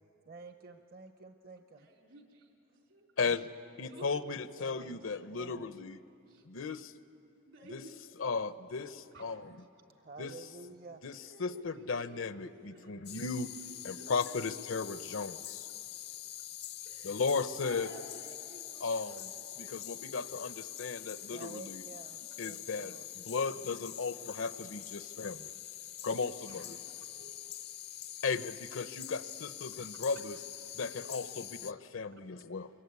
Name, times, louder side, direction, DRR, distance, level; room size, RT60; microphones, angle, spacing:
voice 1, 0.3-1.9 4.5-5.1 5.4-5.7 10.0-11.0 21.3-23.1, right 4 dB, 45° right, 7 dB, 0.8 m, -50 dB
voice 2, 1.8-2.5 2.9-3.4 3.9-4.2 4.8-5.2 6.3-6.5 7.5-7.9 8.7-9.2 9.6-9.7 11.2-15.1 16.8-17.1 17.6-21.1 22.1-22.3 26.4-27.4 31.0-31.2, right 1 dB, 80° right, 1 dB, 4.1 m, -55 dB
voice 3, 3.2-3.5 3.8-6.0 6.5-6.9 7.7-7.8 8.2-9.5 10.2-10.3 11.0-13.5 13.8-15.7 17.0-17.9 18.8-19.3 19.6-21.8 22.4-25.5 26.0-26.8 28.2-30.4 30.7-32.7, left 4 dB, 80° left, 13 dB, 0.8 m, -36 dB
sound 1, 13.1-31.7, left 12 dB, 55° left, 0.5 m, -45 dB
25.0 x 23.0 x 9.6 m, 2.7 s
head